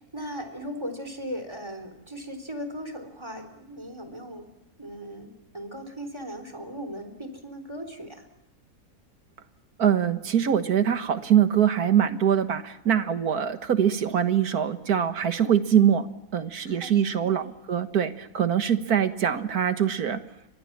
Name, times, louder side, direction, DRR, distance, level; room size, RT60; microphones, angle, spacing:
voice 1, 0.0-4.5 4.8-8.3 16.6-17.3, equal, 15° right, 8 dB, 3.7 m, -38 dB
voice 2, 9.8-16.1 16.3-20.2, right 9 dB, 85° right, 10 dB, 1.9 m, -23 dB
30.0 x 23.5 x 7.4 m, 0.98 s
omnidirectional pair, 1.6 m